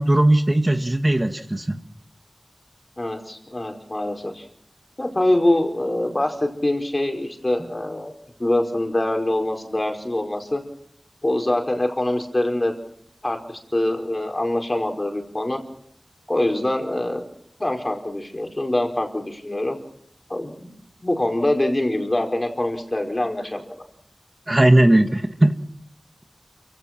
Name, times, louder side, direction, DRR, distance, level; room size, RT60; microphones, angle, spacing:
voice 1, 0.0-1.8 24.5-25.5, right 1 dB, 35° right, 7 dB, 1.7 m, -17 dB
voice 2, 3.0-4.4 5.0-8.1 8.4-10.6 11.2-12.7 13.2-15.6 16.3-17.2 17.6-19.8 20.3-20.7 21.0-23.6, left 1 dB, 35° left, 4 dB, 4.8 m, -24 dB
29.0 x 16.5 x 6.0 m, 0.68 s
wide cardioid pair, 50°, 0 cm